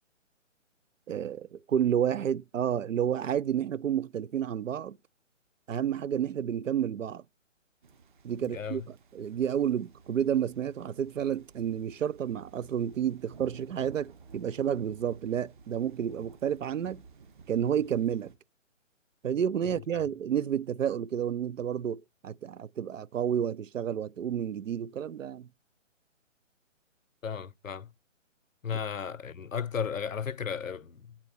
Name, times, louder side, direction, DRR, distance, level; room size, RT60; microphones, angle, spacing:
voice 1, 1.1-5.0 5.7-7.2 8.2-17.0 17.5-18.3 19.2-25.5, right 9 dB, 80° right, 0.5 m, -30 dB
sound 1, 7.8-18.4, right 5 dB, 40° right, 1.0 m, -54 dB
voice 2, 8.5-8.9 19.6-20.0 27.2-27.9 28.6-31.2, left 7 dB, 90° left, 0.7 m, -35 dB
8.6 x 4.1 x 4.3 m
figure-of-eight pair, 145°, 38 cm